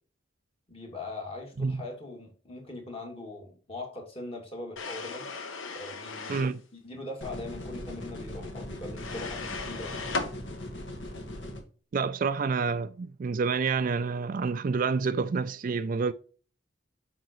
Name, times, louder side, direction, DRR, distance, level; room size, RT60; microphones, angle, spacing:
voice 1, 0.7-5.3 5.7-10.0, left 2 dB, 30° left, 2.4 m, -41 dB
sound 1, 4.8-6.5 9.0-10.3, left 4 dB, 90° left, 1.3 m, -36 dB
voice 2, 6.3-6.6 11.9-16.1, right 5 dB, 45° right, 0.4 m, -28 dB
sound 2, 7.2-11.6, left 1 dB, 65° left, 1.7 m, -40 dB
7.9 x 5.7 x 3.1 m
head